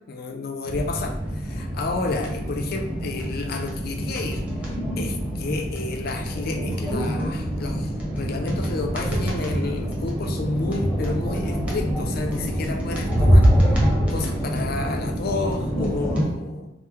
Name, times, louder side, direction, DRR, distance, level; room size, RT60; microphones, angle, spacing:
voice 1, 0.1-4.4 4.7-16.7, left 3 dB, 60° left, 4 dB, 0.4 m, -31 dB
sound 1, 0.6-16.2, equal, 5° right, 0.7 m, -25 dB
2.9 x 2.1 x 3.5 m, 0.86 s
head